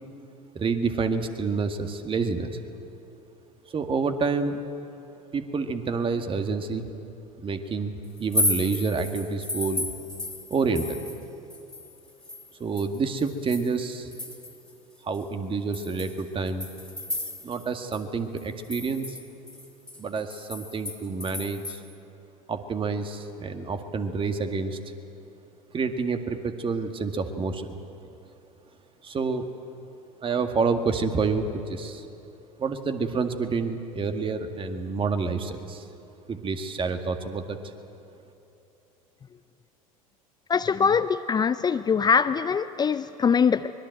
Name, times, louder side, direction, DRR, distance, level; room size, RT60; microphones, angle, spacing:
voice 1, 0.5-2.6 3.7-4.6 5.3-6.9 7.4-7.9 8.2-9.9 10.5-11.0 12.6-14.1 15.0-16.7 17.4-19.1 20.0-21.8 22.5-24.8 25.7-27.7 29.0-29.5 30.2-32.1 32.6-35.8 36.3-37.6, right 4 dB, 30° right, 7 dB, 2.0 m, -28 dB
sound 1, 8.2-11.2 11.5-14.7 15.1-15.2 15.7-17.7 17.9-18.0 18.4-21.8, left 1 dB, 5° left, 3.0 m, -33 dB
voice 2, 40.5-43.7, left 6 dB, 20° left, 12 dB, 0.6 m, -23 dB
24.5 x 21.0 x 7.9 m, 3.0 s
figure-of-eight pair, 75°, 19 cm